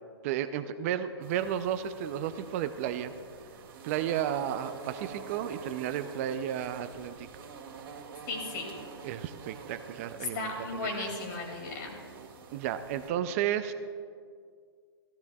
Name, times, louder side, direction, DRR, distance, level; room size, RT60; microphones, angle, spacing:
voice 1, 0.2-3.1 3.8-7.3 9.0-11.1 12.5-13.7, right 10 dB, 35° right, 11 dB, 0.5 m, -33 dB
sound 1, 1.2-13.1, right 6 dB, 60° right, 2.0 m, -47 dB
voice 2, 8.3-8.7 10.2-12.0, left 3 dB, 50° left, 2 dB, 2.4 m, -35 dB
14.5 x 13.0 x 2.3 m, 2.1 s
hypercardioid pair, 140°, 13 cm